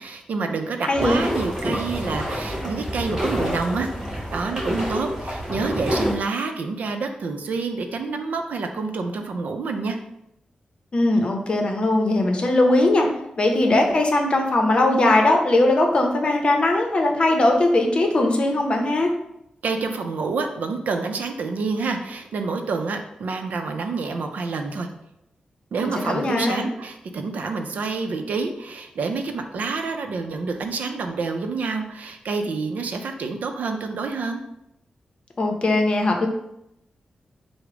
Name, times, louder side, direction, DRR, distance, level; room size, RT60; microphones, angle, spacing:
voice 1, 0.0-3.9 4.3-10.0 19.6-24.9 25.7-34.4, right 4 dB, 80° right, 5 dB, 0.5 m, -28 dB
voice 2, 0.8-1.2 10.9-13.1 13.4-19.1 25.8-26.7 35.4-36.3, left 2 dB, 40° left, 3 dB, 0.7 m, -20 dB
sound 1, 0.9-6.1, equal, 25° right, 1.7 m, -27 dB
4.9 x 2.1 x 4.8 m, 0.82 s
wide cardioid pair, 135°, 3 cm